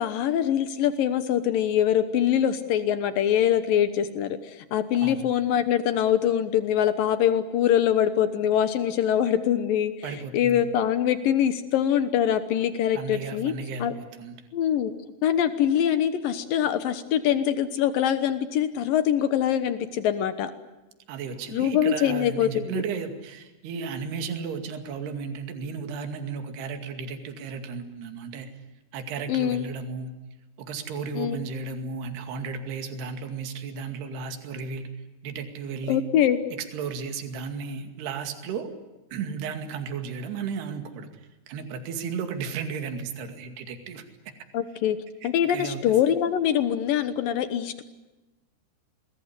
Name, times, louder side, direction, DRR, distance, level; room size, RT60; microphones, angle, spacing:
voice 1, 0.0-13.5 13.8-13.9 14.5-14.9 15.2-20.5 21.5-22.8 29.3-29.7 31.2-31.4 35.9-36.4 44.5-45.0 45.2-47.8, left 10 dB, 80° left, 11 dB, 2.0 m, -24 dB
voice 2, 10.0-10.6 12.9-14.4 21.1-28.5 28.9-30.2 30.6-34.9 35.2-36.0 36.6-38.7 39.1-41.1 41.5-44.0 45.2-46.0, right 5 dB, 60° right, 7 dB, 4.0 m, -34 dB
26.5 x 20.5 x 9.7 m, 1.1 s
omnidirectional pair, 5.8 m